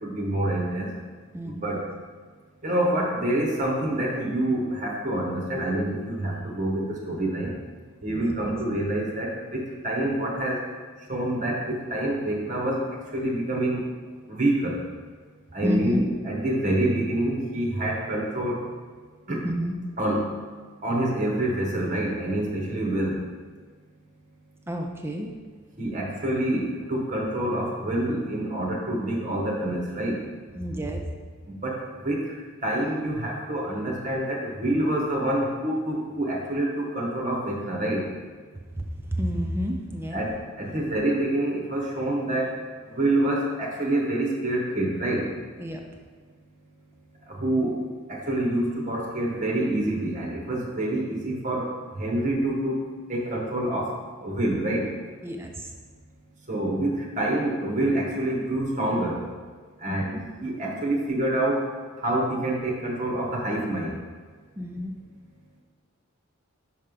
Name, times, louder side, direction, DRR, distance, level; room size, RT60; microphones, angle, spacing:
voice 1, 0.0-0.9 1.4-1.8 2.6-7.5 8.0-10.6 11.1-12.9 13.1-13.8 14.3-14.8 15.5-18.6 19.3-19.5 20.0-20.3 20.8-23.2 25.8-30.2 31.5-38.1 40.1-42.6 42.9-45.3 47.3-47.8 48.1-53.9 54.2-54.9 56.5-59.2 59.8-60.1 60.4-61.7 62.0-64.0, right 1 dB, 35° right, -2 dB, 1.0 m, -27 dB
voice 2, 1.3-1.8 8.1-8.5 15.6-16.0 19.4-19.7 24.7-25.3 30.6-31.0 38.7-38.8 39.1-40.2 45.6-45.8 55.2-55.7 59.9-60.2 64.6-64.9, equal, 10° right, 2 dB, 0.3 m, -30 dB
5.6 x 3.3 x 5.1 m, 1.5 s
head